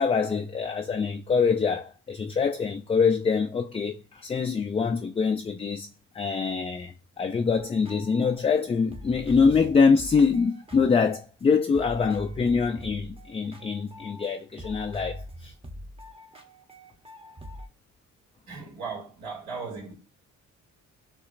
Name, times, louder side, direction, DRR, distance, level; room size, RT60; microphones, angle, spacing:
voice 1, 0.0-5.9 6.1-15.5, left 5 dB, 20° left, 0.3 m, -24 dB
sound 1, 7.5-11.4 11.7-14.3 14.6-17.7, equal, 20° right, 1.0 m, -43 dB
voice 2, 18.5-19.9, right 4 dB, 70° right, 2.2 m, -37 dB
6.7 x 3.0 x 2.4 m
cardioid pair, 90°, 30 cm